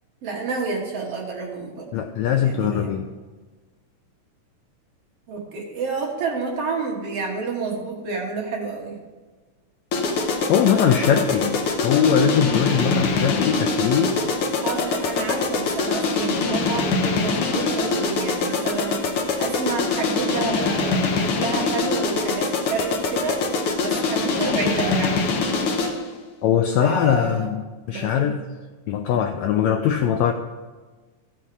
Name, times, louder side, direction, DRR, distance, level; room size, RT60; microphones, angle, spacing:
voice 1, 0.2-1.9 2.4-2.9 5.3-9.0 14.6-25.4 26.8-27.5 27.9-28.3, right 4 dB, 60° right, -1 dB, 2.0 m, -29 dB
voice 2, 1.9-3.1 10.5-14.1 26.4-27.6 27.9-28.4 28.9-30.3, left 8 dB, 80° left, 6 dB, 1.6 m, -21 dB
sound 1, 9.9-26.1, left 4 dB, 65° left, 1.4 m, -24 dB
14.5 x 5.8 x 4.7 m, 1.3 s
omnidirectional pair, 3.7 m